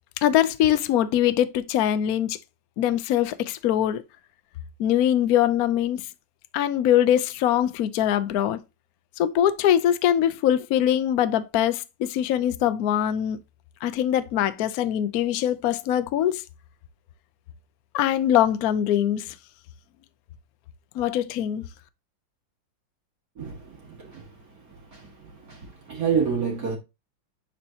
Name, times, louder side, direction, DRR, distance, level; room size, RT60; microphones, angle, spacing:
voice 1, 0.2-2.4 2.8-4.0 4.8-6.1 6.5-8.6 9.2-13.4 13.8-16.4 17.9-19.3 21.0-21.6, left 11 dB, 70° left, 0.8 m, -22 dB
voice 2, 25.5-26.8, right 6 dB, 45° right, 2.3 m, -27 dB
9.7 x 4.4 x 2.8 m
omnidirectional pair, 2.2 m